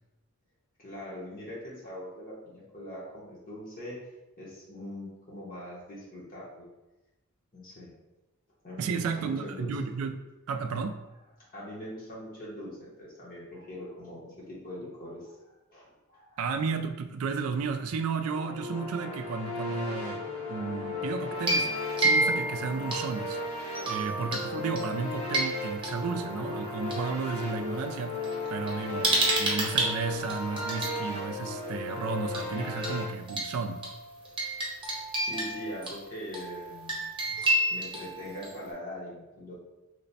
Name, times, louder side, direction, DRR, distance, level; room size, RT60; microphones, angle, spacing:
voice 1, 0.8-4.0 4.4-6.7 7.5-7.9 8.6-9.7 11.5-16.4 35.2-37.0 37.3-39.5, equal, 40° left, -6 dB, 0.8 m, -42 dB
voice 2, 8.8-10.2 10.5-11.0 16.4-20.2 20.5-33.8, right 5 dB, 70° right, 7 dB, 0.3 m, -33 dB
sound 1, 18.3-33.0, left 2 dB, 70° left, 1.2 m, -35 dB
sound 2, 21.4-23.3 23.7-24.4 24.8-26.9 27.8-27.9 28.2-31.0 32.3-32.5 32.8-32.9 33.3-38.7, right 2 dB, 20° right, 0.7 m, -31 dB
3.2 x 2.1 x 4.0 m, 1.0 s
head